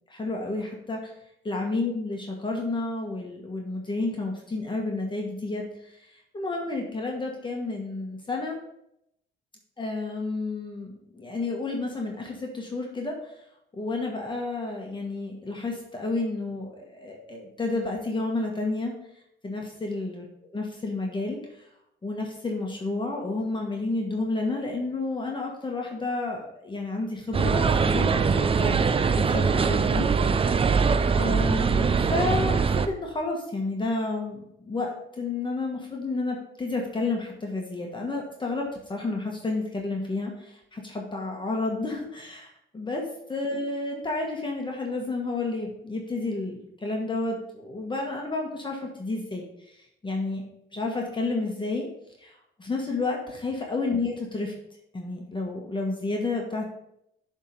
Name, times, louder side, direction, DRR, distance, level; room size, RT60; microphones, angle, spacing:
voice 1, 0.1-1.0 1.4-5.9 6.3-8.6 9.8-13.1 13.7-18.9 19.4-20.3 20.5-21.7 22.0-28.7 29.1-30.0 30.5-30.6 31.1-34.9 35.2-38.6 38.9-42.5 42.7-43.0 43.3-49.8 50.0-50.4 50.7-51.9 52.2-52.3 52.6-54.5 54.9-56.7, left 3 dB, 25° left, 0 dB, 1.3 m, -30 dB
sound 1, 27.3-32.9, right 5 dB, 30° right, 0.5 m, -22 dB
7.2 x 3.7 x 5.4 m, 0.78 s
cardioid pair, 90°, 20 cm